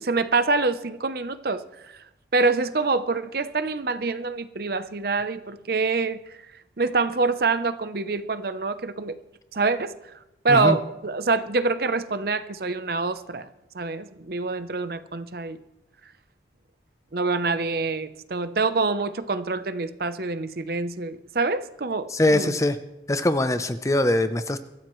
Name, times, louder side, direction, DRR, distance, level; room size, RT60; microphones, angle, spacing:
voice 1, 0.0-1.6 2.3-6.2 6.8-9.2 9.5-10.0 10.4-13.5 13.7-15.6 17.1-22.5, right 3 dB, 55° right, 12 dB, 0.7 m, -25 dB
voice 2, 22.1-22.8 23.1-24.6, left 1 dB, 15° left, 11 dB, 0.6 m, -22 dB
23.5 x 14.0 x 3.1 m, 0.92 s
head